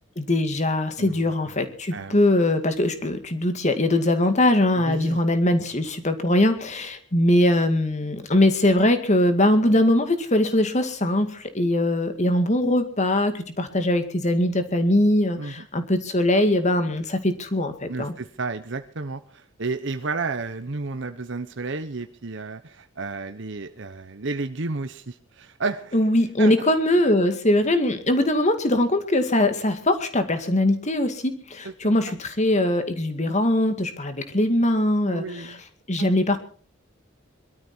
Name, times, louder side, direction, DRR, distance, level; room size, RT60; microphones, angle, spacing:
voice 1, 0.2-18.1 25.9-35.6 35.9-36.4, left 1 dB, 35° left, 8 dB, 2.1 m, -21 dB
voice 2, 1.0-1.3 1.9-2.2 4.7-5.2 15.4-15.6 17.9-26.0 26.4-26.7 31.6-32.1 35.0-35.6 36.0-36.1, right 3 dB, 65° right, 8 dB, 1.0 m, -32 dB
22.0 x 13.0 x 4.4 m, 0.42 s
head